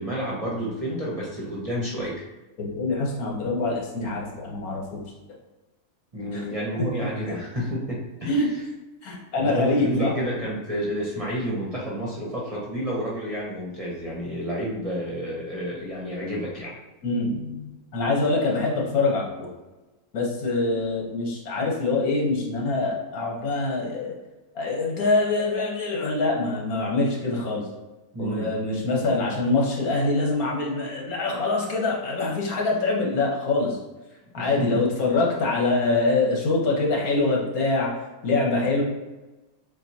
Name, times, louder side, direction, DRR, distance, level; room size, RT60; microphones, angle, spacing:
voice 1, 0.0-2.2 6.1-8.4 9.4-16.7 28.1-28.5 34.4-34.8, equal, 30° right, -5 dB, 0.8 m, -30 dB
voice 2, 2.6-5.0 6.3-6.4 7.2-7.4 8.3-8.5 9.0-10.1 17.0-19.5 20.1-24.2 24.5-27.6 28.2-33.8 34.3-37.9 38.2-38.8, left 3 dB, 75° left, -2 dB, 1.6 m, -24 dB
7.2 x 2.6 x 2.8 m, 1.1 s
omnidirectional pair, 1.6 m